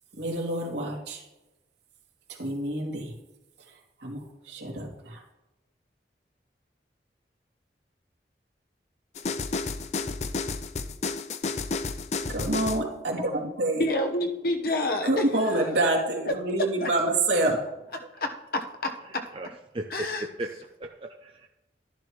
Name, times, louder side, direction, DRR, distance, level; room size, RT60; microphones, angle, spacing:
voice 1, 0.2-1.2 2.4-3.1 4.0-5.2 12.3-13.9 15.0-17.6, right 2 dB, 80° right, 2.8 m, -27 dB
sound 1, 9.1-12.9, left 4 dB, 40° left, 0.5 m, -31 dB
voice 2, 13.8-15.7 16.3-16.4 16.8-17.2 18.1-19.2 19.9-20.3, left 1 dB, 55° left, 1.2 m, -29 dB
voice 3, 17.4-17.8 19.0-19.8 20.4-20.5 20.8-21.5, right 1 dB, 30° right, 0.6 m, -38 dB
12.5 x 11.0 x 3.2 m
head